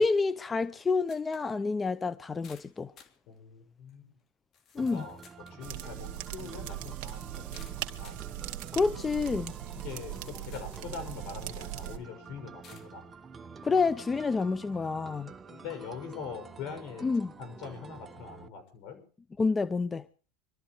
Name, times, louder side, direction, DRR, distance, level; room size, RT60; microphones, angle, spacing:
voice 1, 0.0-2.9 4.7-5.1 8.7-9.5 13.6-15.3 17.0-17.3 19.4-20.0, left 4 dB, 20° left, 0.7 m, -28 dB
sound 1, 1.1-1.5 1.9-2.0 2.4-3.2 3.9-4.0 4.5-5.6 7.5-8.3 9.0-9.1 9.7-10.9 11.4-11.5 12.6-12.9, left 7 dB, 40° left, 2.8 m, -56 dB
voice 2, 3.3-4.1 4.8-5.2 5.5-8.2 9.8-13.0 15.5-17.1 17.4-19.0, left 6 dB, 60° left, 6.2 m, -43 dB
sound 2, 4.8-18.5, right 5 dB, 20° right, 1.0 m, -48 dB
sound 3, 5.6-12.0, right 13 dB, 55° right, 2.1 m, -40 dB
26.0 x 13.0 x 3.1 m
supercardioid pair, 110°, 0 cm